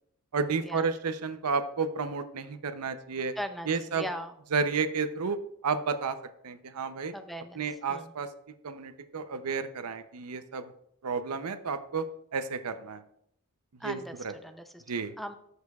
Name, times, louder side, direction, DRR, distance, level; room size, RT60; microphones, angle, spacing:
voice 1, 0.3-3.3 3.7-4.1 4.5-6.2 6.4-7.1 7.6-8.3 8.6-10.7 11.0-12.1 12.3-13.0 13.8-14.0 14.2-14.3 14.9-15.1, right 5 dB, 90° right, 11 dB, 0.6 m, -31 dB
voice 2, 3.4-4.3 7.1-7.6 7.9-8.1 13.8-14.1 14.4-14.8 15.2-15.3, equal, ahead, 7 dB, 0.5 m, -38 dB
13.0 x 6.6 x 2.4 m, 0.73 s
head